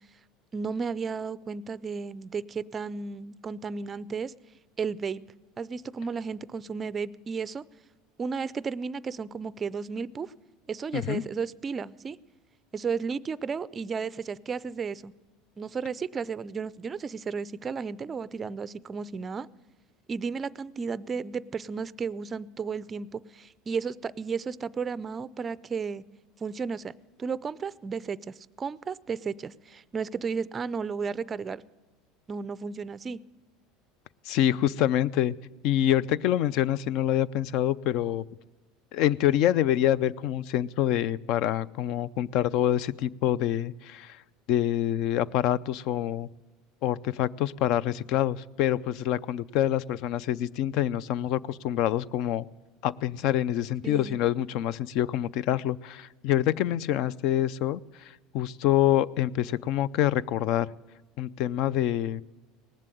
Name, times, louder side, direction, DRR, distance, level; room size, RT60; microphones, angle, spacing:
voice 1, 0.5-4.3 4.8-5.2 5.6-7.6 8.2-10.3 10.7-12.2 12.7-15.1 15.6-19.5 20.1-26.0 26.4-26.9 27.2-31.6 32.3-33.2 53.8-54.2, right 5 dB, 25° right, 18 dB, 0.4 m, -33 dB
voice 2, 34.3-35.3 35.6-38.2 38.9-44.2 44.5-46.3 46.8-52.5 52.8-57.8 58.3-60.7 61.2-62.2, left 12 dB, 60° left, 22 dB, 0.4 m, -26 dB
19.0 x 7.5 x 9.2 m, 1.2 s
supercardioid pair, 130°, 0 cm